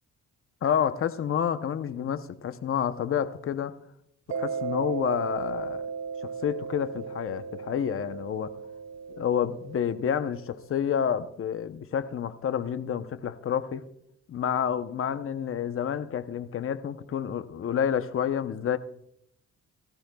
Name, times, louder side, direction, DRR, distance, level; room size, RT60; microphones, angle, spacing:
voice 1, 0.6-3.7 4.3-5.8 6.2-8.5 9.1-13.8 14.3-18.8, left 8 dB, 45° left, 11 dB, 0.8 m, -29 dB
Mallet percussion, 4.3-10.7, right 6 dB, 60° right, 0.6 m, -36 dB
18.0 x 14.5 x 2.3 m, 0.75 s
cardioid pair, 90°, 30 cm